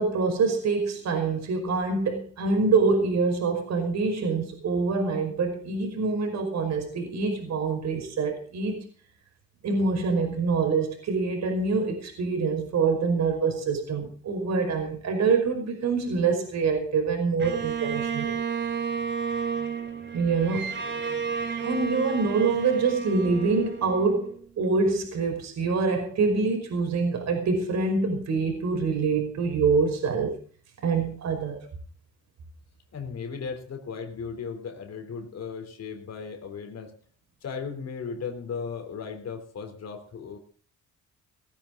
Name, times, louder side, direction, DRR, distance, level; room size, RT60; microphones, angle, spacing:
voice 1, 0.0-8.9 9.6-18.4 20.1-20.8 21.6-30.3 30.8-31.6, right 4 dB, 65° right, 5 dB, 5.3 m, -25 dB
Bowed string instrument, 17.4-24.7, right 6 dB, 40° right, 3.7 m, -32 dB
voice 2, 32.9-36.9 37.4-40.4, left 5 dB, 60° left, 6 dB, 3.5 m, -36 dB
19.0 x 13.5 x 3.9 m, 0.41 s
cardioid pair, 90°, 30 cm